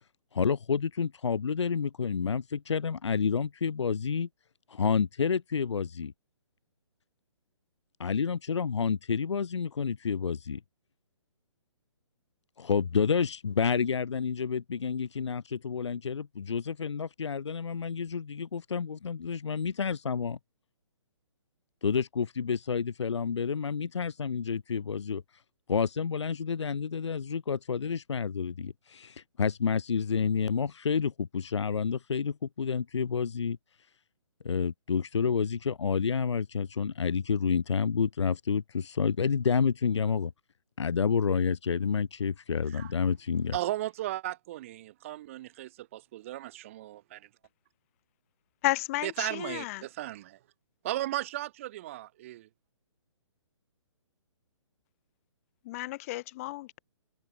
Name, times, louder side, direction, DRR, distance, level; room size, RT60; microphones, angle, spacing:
voice 1, 0.3-4.3 4.7-6.1 8.0-10.6 12.6-20.4 21.8-25.2 25.7-33.6 34.4-40.3 40.8-43.6, left 6 dB, 65° left, 0.9 m, -29 dB
voice 2, 42.7-43.1 43.5-47.3 49.0-49.6 50.0-50.2 50.8-52.5, right 15 dB, 25° right, 0.5 m, -36 dB
voice 3, 48.6-49.8 55.6-56.8, left 19 dB, 30° left, 1.0 m, -32 dB
figure-of-eight pair, 130°, 16 cm